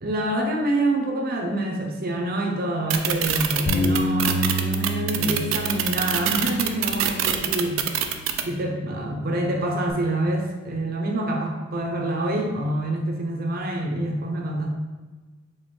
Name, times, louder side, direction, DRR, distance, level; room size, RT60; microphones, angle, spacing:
voice 1, 0.0-8.0 8.5-14.7, right 1 dB, 50° right, 1 dB, 0.7 m, -26 dB
sound 1, 2.9-8.4, right 10 dB, 80° right, 0.4 m, -24 dB
Bass guitar, 3.7-9.9, equal, 60° left, 0.6 m, -30 dB
4.6 x 2.4 x 4.4 m, 1.2 s
head